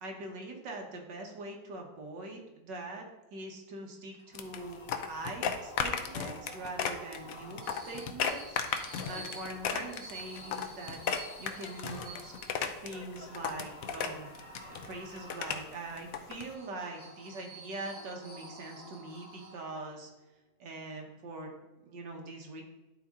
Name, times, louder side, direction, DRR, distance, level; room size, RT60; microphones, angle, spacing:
voice 1, 0.0-11.0 11.4-12.3 12.8-20.1 20.6-21.5 21.8-22.6, right 2 dB, 65° right, 1 dB, 1.8 m, -43 dB
sound 1, 4.2-19.9, right 2 dB, 20° right, 0.9 m, -50 dB
sound 2, 4.4-16.5, left 7 dB, 70° left, 0.8 m, -36 dB
11.0 x 4.2 x 3.6 m, 1.0 s
omnidirectional pair, 2.1 m